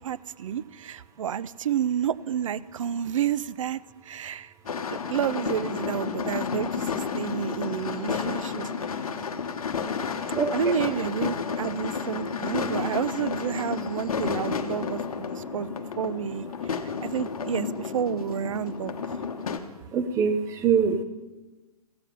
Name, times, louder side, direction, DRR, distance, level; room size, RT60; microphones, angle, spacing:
voice 1, 0.0-4.5 4.9-9.0 10.5-16.5 17.0-18.9, right 9 dB, 55° right, 18 dB, 0.4 m, -30 dB
sound 1, 4.6-19.6, left 6 dB, 65° left, 1.0 m, -31 dB
voice 2, 10.3-10.7 19.9-21.0, right 6 dB, 15° right, 9 dB, 0.7 m, -24 dB
15.0 x 7.3 x 5.4 m, 1.2 s
figure-of-eight pair, 125°, 20 cm